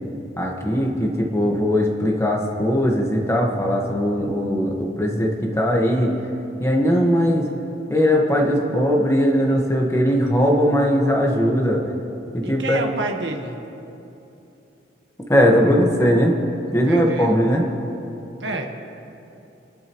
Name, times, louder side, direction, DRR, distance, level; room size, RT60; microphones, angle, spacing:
voice 1, 0.4-6.1 6.6-7.5 7.9-11.8 12.3-12.8 15.3-16.4 16.7-17.6, equal, 15° left, 0 dB, 1.5 m, -19 dB
voice 2, 12.4-13.5 16.9-17.4 18.4-18.7, right 2 dB, 70° right, 2 dB, 1.5 m, -28 dB
30.0 x 11.5 x 3.1 m, 2.9 s
head